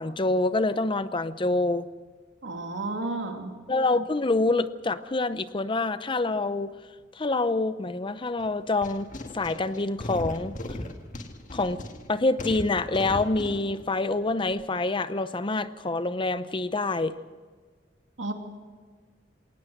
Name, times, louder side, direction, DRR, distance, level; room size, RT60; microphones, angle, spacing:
voice 1, 0.0-1.9 3.7-6.7 7.1-9.1 9.3-10.6 11.5-11.8 12.1-17.1, left 2 dB, 25° left, 13 dB, 0.7 m, -26 dB
voice 2, 2.4-3.6 18.2-18.3, right 2 dB, 90° right, 4 dB, 2.6 m, -32 dB
sound 1, 8.4-14.8, left 1 dB, 45° left, 1.8 m, -38 dB
21.0 x 19.0 x 6.5 m, 1.5 s
head